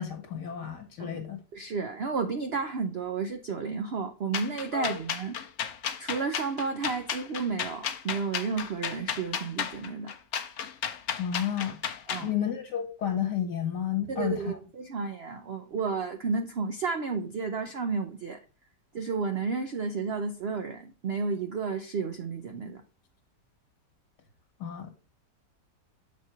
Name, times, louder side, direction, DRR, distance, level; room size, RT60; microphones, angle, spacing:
voice 1, 0.0-1.4 4.7-5.0 11.2-11.8 12.2-14.6 24.6-24.9, left 9 dB, 80° left, 1.8 m, -31 dB
voice 2, 1.5-5.3 6.0-10.1 12.1-12.3 14.1-18.4 18.9-22.8, right 5 dB, 70° right, 0.6 m, -32 dB
sound 1, 4.3-12.3, left 8 dB, 55° left, 0.8 m, -33 dB
7.3 x 4.3 x 4.4 m
omnidirectional pair, 1.8 m